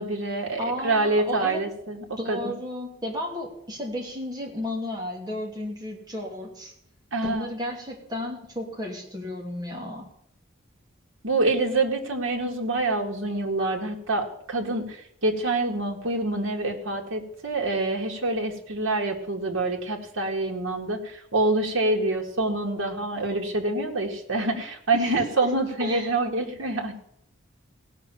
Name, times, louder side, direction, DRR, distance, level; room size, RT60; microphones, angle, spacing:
voice 1, 0.0-2.5 7.1-7.5 11.2-27.0, right 2 dB, 90° right, 1 dB, 2.1 m, -26 dB
voice 2, 0.6-1.6 2.2-6.7 7.2-10.0 24.9-25.0 25.8-26.1, equal, 20° right, -1 dB, 2.9 m, -33 dB
17.0 x 6.1 x 7.1 m, 0.71 s
head